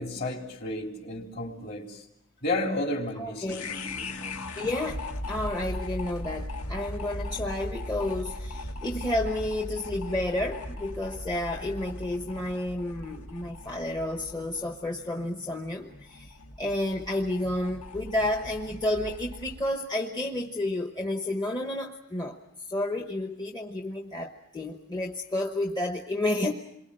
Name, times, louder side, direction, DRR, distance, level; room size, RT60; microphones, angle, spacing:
voice 1, 0.0-2.1 2.4-4.4, left 2 dB, 45° left, 2 dB, 3.6 m, -33 dB
voice 2, 3.2-3.8 4.6-26.5, left 1 dB, 20° left, 3 dB, 1.1 m, -31 dB
sound 1, 3.5-19.7, left 1 dB, 80° left, 1.8 m, -39 dB
28.0 x 23.0 x 6.6 m, 0.81 s
head